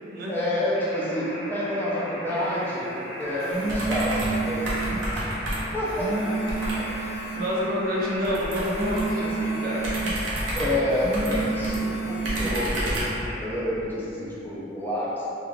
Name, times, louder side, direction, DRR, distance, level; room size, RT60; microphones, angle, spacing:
voice 1, 0.3-4.7 5.1-5.3 5.7-6.4 6.8-6.9 10.5-13.0 13.4-15.3, left 1 dB, 10° left, -8 dB, 0.4 m, -28 dB
sound 1, 0.7-13.7, equal, 60° left, 0.8 m, -39 dB
sound 2, 3.2-5.0 5.7-7.5 8.4-10.2 10.8-12.5, right 3 dB, 80° left, 1.2 m, -29 dB
sound 3, 3.7-4.4 4.7-5.8 6.5-6.8 8.2-9.2 9.8-11.8 12.2-13.2, right 1 dB, 75° right, 0.7 m, -30 dB
voice 2, 7.0-9.9, equal, 45° right, -5 dB, 0.4 m, -29 dB
2.5 x 2.3 x 3.1 m, 3.0 s
head